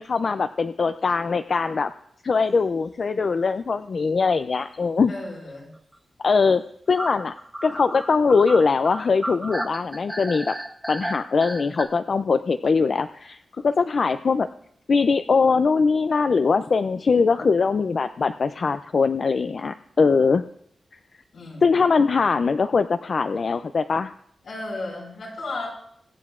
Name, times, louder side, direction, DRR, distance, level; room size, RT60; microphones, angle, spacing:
voice 1, 0.0-1.9 2.2-5.1 6.2-6.6 6.9-7.3 7.6-10.5 10.9-14.5 14.9-20.4 21.6-24.1, left 4 dB, 50° left, 10 dB, 0.4 m, -21 dB
sound 1, 2.7-2.9 3.2-3.3 3.6-3.7 4.6-4.9 7.0-11.8, right 1 dB, 10° right, 0.8 m, -33 dB
voice 2, 5.1-5.7 21.3-22.1 24.4-25.7, left 2 dB, 80° left, -3 dB, 5.1 m, -34 dB
23.5 x 7.9 x 2.5 m, 0.70 s
wide cardioid pair, 130°, 0 cm